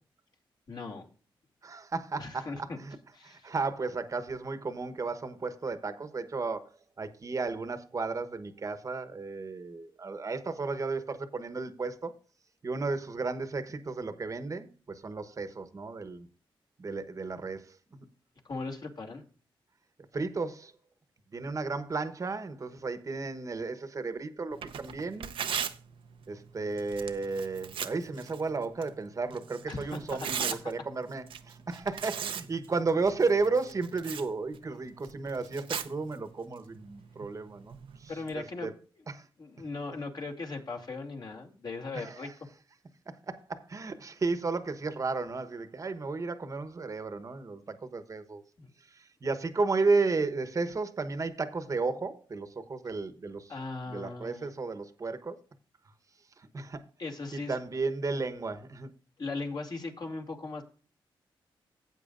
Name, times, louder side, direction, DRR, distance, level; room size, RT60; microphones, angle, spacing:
voice 1, 0.7-1.1 2.2-2.8 3.1-3.5 18.4-19.2 29.7-30.5 38.1-38.7 39.4-42.3 48.6-48.7 53.5-54.5 57.0-57.6 59.2-60.6, left 3 dB, 50° left, 2.4 m, -38 dB
voice 2, 1.6-2.5 2.8-3.0 3.2-12.1 12.6-16.3 16.8-18.1 20.1-20.7 21.3-25.3 26.3-38.7 39.1-39.3 41.9-42.3 43.1-48.4 48.9-53.5 53.9-55.4 56.4-56.8 57.3-58.9, right 3 dB, 40° right, 1.1 m, -33 dB
Tearing, 24.5-38.3, right 8 dB, 80° right, 0.7 m, -41 dB
15.0 x 8.1 x 2.5 m
cardioid pair, 95°, 9 cm